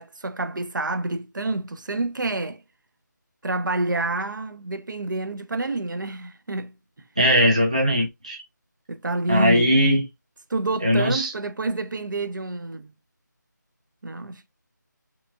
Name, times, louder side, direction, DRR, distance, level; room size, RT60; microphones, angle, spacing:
voice 1, 0.0-2.6 3.4-6.7 8.9-9.7 10.5-12.9 14.0-14.5, right 2 dB, 75° right, 0.6 m, -28 dB
voice 2, 7.2-8.4 9.3-10.0 10.8-11.3, equal, 20° right, 0.4 m, -19 dB
2.8 x 2.3 x 2.6 m
figure-of-eight pair, 175°, 10 cm